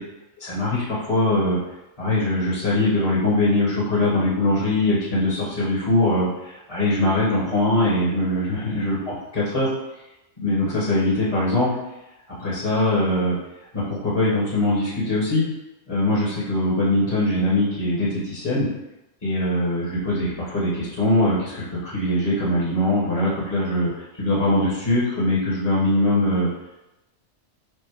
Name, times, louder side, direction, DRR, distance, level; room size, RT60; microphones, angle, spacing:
voice 1, 0.4-1.6 2.0-9.7 10.4-11.7 12.4-13.4 13.7-15.5 15.9-18.7 19.2-26.5, left 1 dB, 30° left, -8 dB, 1.1 m, -22 dB
4.7 x 2.1 x 4.5 m, 0.96 s
omnidirectional pair, 1.3 m